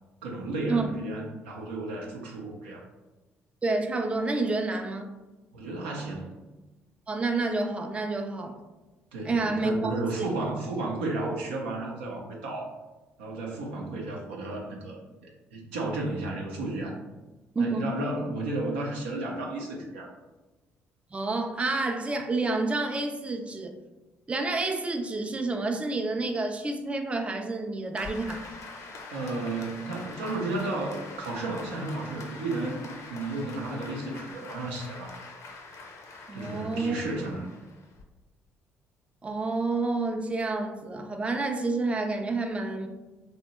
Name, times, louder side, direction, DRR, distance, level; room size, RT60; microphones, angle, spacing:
voice 1, 0.2-2.8 5.5-6.4 9.1-12.7 13.2-15.0 15.5-17.0 17.6-20.1 29.1-35.2 36.3-37.5, right 2 dB, 85° right, -1 dB, 0.5 m, -33 dB
voice 2, 3.6-5.2 7.1-8.6 9.2-10.3 17.6-17.8 21.1-23.8 24.3-28.5 36.3-37.0 39.2-42.9, right 3 dB, 20° right, 5 dB, 0.4 m, -29 dB
Applause, 28.0-38.0, left 3 dB, 55° left, 0.5 m, -44 dB
2.7 x 2.1 x 2.9 m, 1.1 s
hypercardioid pair, 55°, 6 cm